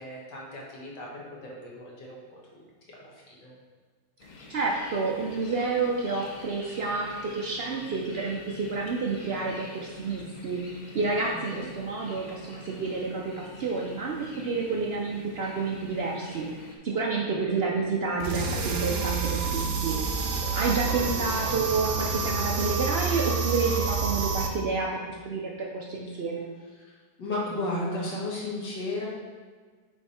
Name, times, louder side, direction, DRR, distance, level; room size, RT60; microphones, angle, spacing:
voice 1, 0.0-3.5 11.3-11.7 17.3-17.7 20.6-21.1 26.8-29.1, left 2 dB, 80° left, -4 dB, 2.0 m, -36 dB
sound 1, 4.2-16.8, left 2 dB, 55° left, 0.5 m, -47 dB
voice 2, 4.5-10.6 10.9-16.5 16.8-20.0 20.5-26.5, right 4 dB, 80° right, -1 dB, 0.5 m, -29 dB
sound 2, 18.2-24.5, right 5 dB, 65° right, 1.0 m, -28 dB
8.0 x 3.4 x 4.2 m, 1.5 s
omnidirectional pair, 1.9 m